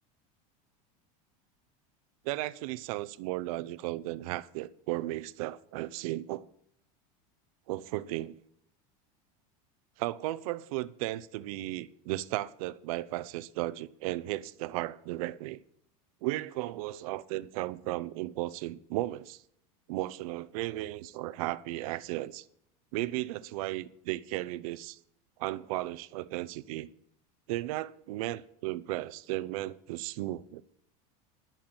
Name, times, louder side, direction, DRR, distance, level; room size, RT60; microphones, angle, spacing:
voice 1, 2.2-6.5 7.7-8.4 10.0-15.6 16.2-19.4 19.9-22.4 22.9-25.0 25.4-26.9 27.5-30.6, right 17 dB, 70° right, 0.7 m, -35 dB
11.5 x 5.9 x 8.8 m
supercardioid pair, 155°, 19 cm